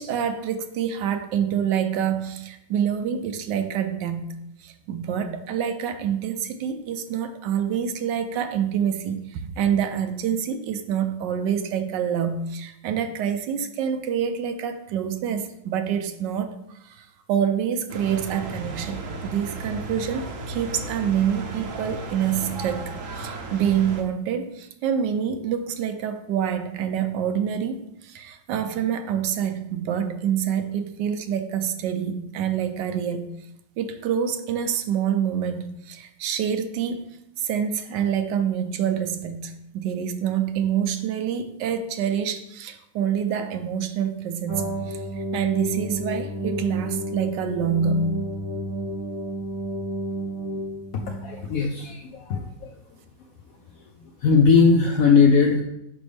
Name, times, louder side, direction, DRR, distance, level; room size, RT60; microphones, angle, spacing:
voice 1, 0.0-4.3 4.6-33.3 33.8-48.1, right 8 dB, 75° right, 8 dB, 1.2 m, -26 dB
sound 1, 17.9-24.0, right 2 dB, 55° right, 1.0 m, -35 dB
sound 2, 44.5-51.6, right 1 dB, 30° left, 1.1 m, -31 dB
voice 2, 50.9-52.8 54.2-55.6, left 5 dB, 70° left, 3 dB, 0.8 m, -19 dB
6.1 x 5.2 x 3.3 m, 0.80 s
omnidirectional pair, 2.0 m